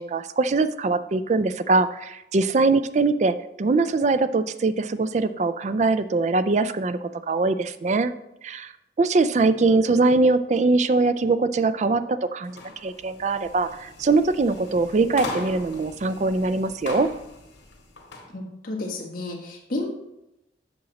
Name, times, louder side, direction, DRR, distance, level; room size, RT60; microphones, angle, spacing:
voice 1, 0.0-7.0 7.3-8.1 8.4-8.7 9.0-17.1, right 3 dB, 40° right, 12 dB, 0.3 m, -22 dB
sound 1, 12.4-18.3, left 2 dB, 85° left, 1.8 m, -40 dB
voice 2, 18.3-19.9, left 2 dB, 50° left, -1 dB, 1.7 m, -31 dB
7.7 x 6.0 x 4.1 m, 0.89 s
head